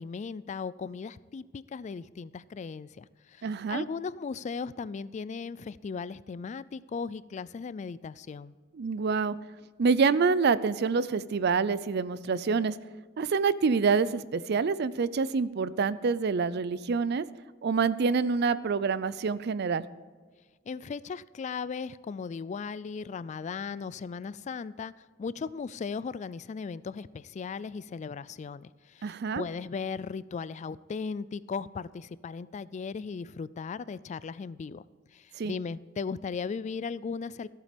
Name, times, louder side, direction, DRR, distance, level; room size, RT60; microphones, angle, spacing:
voice 1, 0.0-8.5 20.7-24.9 25.2-34.8 35.1-37.5, left 5 dB, 35° left, 18 dB, 0.3 m, -37 dB
voice 2, 3.4-3.8 8.7-9.4 9.8-12.7 13.2-17.2 17.6-19.9 29.0-29.4 35.4-35.5, right 5 dB, 55° right, 17 dB, 0.4 m, -26 dB
14.5 x 8.4 x 5.1 m, 1.5 s
head